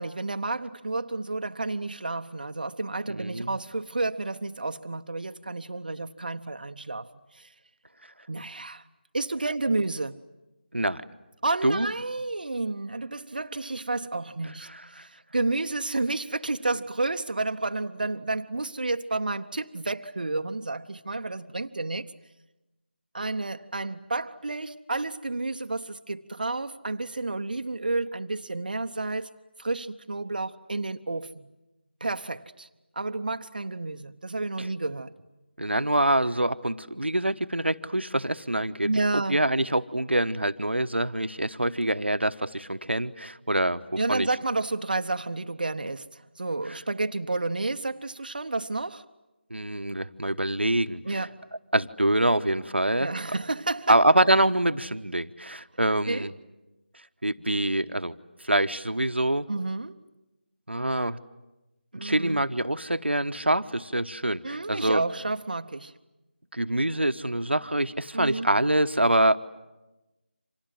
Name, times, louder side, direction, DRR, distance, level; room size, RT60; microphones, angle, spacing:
voice 1, 0.0-7.5 8.3-8.8 9.1-10.2 11.4-22.1 23.1-29.3 29.6-31.5 32.0-32.7 33.0-35.2 38.8-39.4 44.0-49.0 51.0-51.4 53.0-54.0 56.1-56.3 59.5-60.0 61.9-62.4 64.4-65.9 68.1-68.5, right 2 dB, 50° right, 0.9 m, -31 dB
voice 2, 3.1-3.6 10.7-11.0 11.6-11.9 15.0-15.1 34.6-34.7 35.6-38.9 39.3-43.8 44.1-44.3 46.7-46.8 49.5-51.0 51.7-53.1 53.9-56.3 57.2-58.1 58.4-59.5 60.7-61.2 61.9-65.0 66.5-69.4, right 1 dB, 80° right, 1.2 m, -25 dB
30.0 x 26.0 x 7.6 m
figure-of-eight pair, 165°, 6 cm